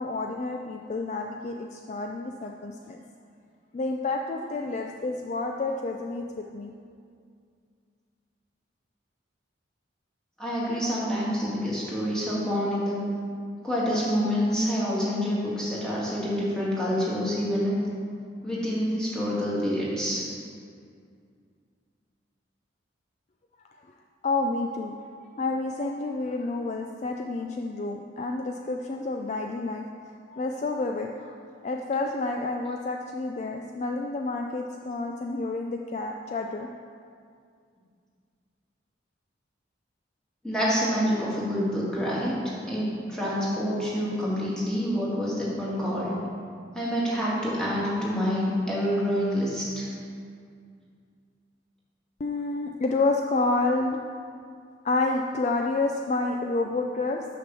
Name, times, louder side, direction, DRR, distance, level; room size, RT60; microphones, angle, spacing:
voice 1, 0.0-3.0 3.7-6.7 24.2-25.0 25.4-29.8 30.3-31.3 31.6-36.7 52.2-54.0 54.8-57.2, left 3 dB, 35° left, 2 dB, 0.3 m, -29 dB
voice 2, 10.4-13.0 13.6-17.8 18.4-20.2 40.4-46.2 46.7-49.9, equal, 5° left, -7 dB, 1.9 m, -27 dB
6.4 x 5.9 x 6.9 m, 2.3 s
head